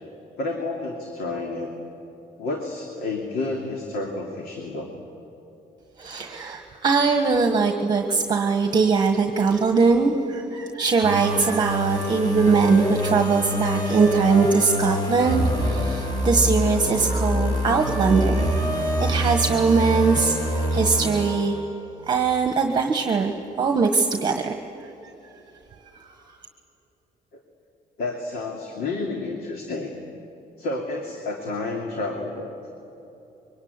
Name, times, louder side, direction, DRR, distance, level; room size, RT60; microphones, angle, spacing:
voice 1, 0.4-1.7 2.4-4.9 27.3-27.4 28.0-29.9 30.6-32.5, left 2 dB, 70° left, 1 dB, 2.9 m, -30 dB
voice 2, 6.0-18.5 19.0-20.4 20.7-21.6 22.1-24.6, right 4 dB, 25° right, 5 dB, 1.4 m, -21 dB
sound 1, 11.0-21.8, equal, 25° left, 5.3 m, -26 dB
26.0 x 23.5 x 9.7 m, 3.0 s
cardioid pair, 175°, 16 cm